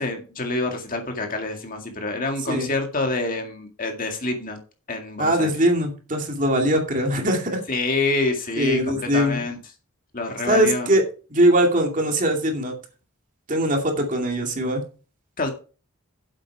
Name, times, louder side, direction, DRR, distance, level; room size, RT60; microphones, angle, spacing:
voice 1, 0.0-4.6 4.9-5.5 7.7-9.6 10.1-10.9 15.4-15.5, left 2 dB, 40° left, 4 dB, 2.1 m, -27 dB
voice 2, 5.2-7.6 8.6-9.4 10.5-11.0 11.3-12.7 13.5-14.8, right 1 dB, 35° right, 3 dB, 2.4 m, -21 dB
9.8 x 7.9 x 4.7 m, 0.36 s
head